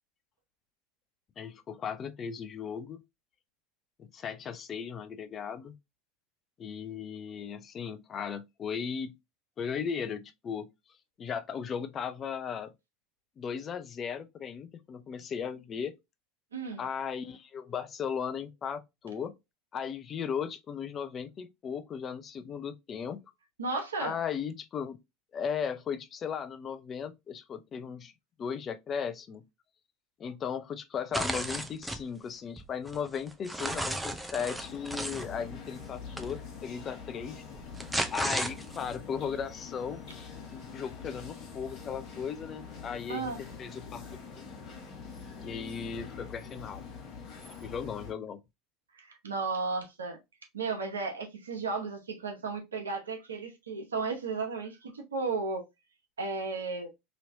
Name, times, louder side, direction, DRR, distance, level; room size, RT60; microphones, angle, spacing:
voice 1, 1.4-3.0 4.0-5.8 6.6-9.2 9.6-10.7 11.2-12.7 13.4-16.0 16.8-19.3 19.7-23.2 24.0-25.0 25.3-28.1 28.4-29.4 30.2-37.4 38.1-44.0 44.3-44.4 45.4-46.8 47.6-48.4, left 7 dB, 40° left, 0.5 m, -36 dB
voice 2, 16.5-16.8 23.6-24.2 43.1-43.4 48.9-50.2 50.5-55.6 56.2-56.9, right 4 dB, 90° right, 0.9 m, -34 dB
sound 1, 31.1-32.0 32.6-35.3 36.2-36.3 37.5-38.9, right 1 dB, 5° right, 0.6 m, -34 dB
sound 2, 34.6-48.1, left 5 dB, 55° left, 1.2 m, -45 dB
3.1 x 2.8 x 2.7 m
hypercardioid pair, 75°, 0 cm